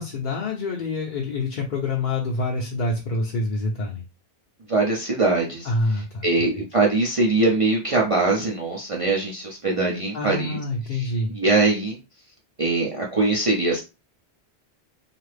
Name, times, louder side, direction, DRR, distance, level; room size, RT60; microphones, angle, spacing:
voice 1, 0.0-4.0 5.6-6.3 10.1-11.3, left 2 dB, 55° left, -1 dB, 0.7 m, -26 dB
voice 2, 4.7-5.7 6.2-10.6 10.9-12.0 12.6-13.8, right 3 dB, 40° right, -2 dB, 0.6 m, -22 dB
2.8 x 2.4 x 3.2 m, 0.29 s
omnidirectional pair, 1.1 m